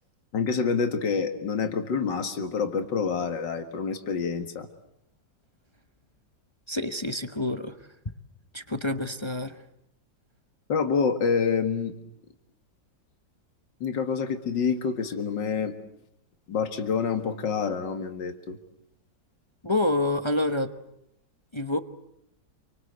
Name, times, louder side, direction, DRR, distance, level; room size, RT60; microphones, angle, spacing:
voice 1, 0.3-4.7 10.7-11.9 13.8-15.7 16.5-18.6, left 5 dB, 75° left, 7 dB, 2.5 m, -27 dB
voice 2, 6.7-7.7 8.5-9.5 19.6-20.7 21.5-21.8, left 2 dB, 20° left, 9 dB, 0.9 m, -27 dB
28.0 x 25.5 x 8.1 m, 0.78 s
omnidirectional pair, 2.0 m